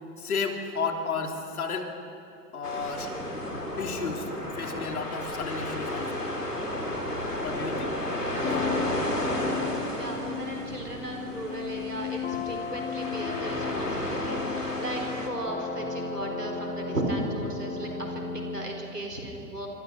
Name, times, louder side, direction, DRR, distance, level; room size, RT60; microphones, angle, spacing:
voice 1, 0.2-1.9 2.5-3.1 3.8-4.3 4.5-6.3 7.4-8.0 8.3-8.6, left 4 dB, 70° left, 3 dB, 3.1 m, -32 dB
sound 1, 2.6-15.3, left 1 dB, 90° left, 3.4 m, -33 dB
sound 2, 8.4-18.6, left 5 dB, 20° left, 1.9 m, -35 dB
voice 2, 10.0-19.7, right 1 dB, 90° right, 2 dB, 4.2 m, -35 dB
26.0 x 25.5 x 6.1 m, 2.7 s
figure-of-eight pair, 95°, 46 cm